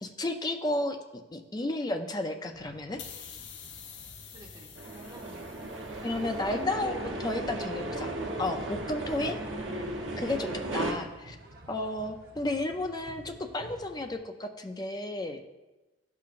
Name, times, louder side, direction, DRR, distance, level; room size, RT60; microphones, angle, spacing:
voice 1, 0.0-1.0 1.3-3.0 6.0-8.1 8.4-9.4 10.2-11.4 11.7-15.4, left 2 dB, 20° left, 5 dB, 0.5 m, -32 dB
sound 1, 2.5-14.1, right 1 dB, 55° right, 0.9 m, -52 dB
sound 2, 3.0-6.4, left 8 dB, 70° left, 0.6 m, -47 dB
voice 2, 4.3-5.4 6.2-7.3 9.0-9.4, right 1 dB, 25° right, 1 dB, 0.8 m, -45 dB
sound 3, 4.8-10.9, right 2 dB, 85° right, 1.1 m, -36 dB
11.5 x 5.7 x 2.5 m, 1.1 s
head